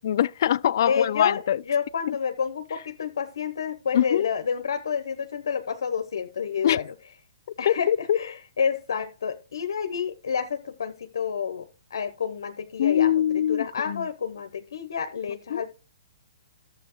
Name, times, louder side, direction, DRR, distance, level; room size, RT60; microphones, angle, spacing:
voice 1, 0.0-1.6 2.1-2.2 3.9-4.3 6.6-6.8 7.7-8.2 12.8-14.0 15.5-15.6, left 10 dB, 60° left, 0.4 m, -23 dB
voice 2, 0.9-6.9 7.6-13.1 13.5-15.7, left 6 dB, 80° left, 1.0 m, -29 dB
12.5 x 7.1 x 3.1 m
hypercardioid pair, 150°, 2 cm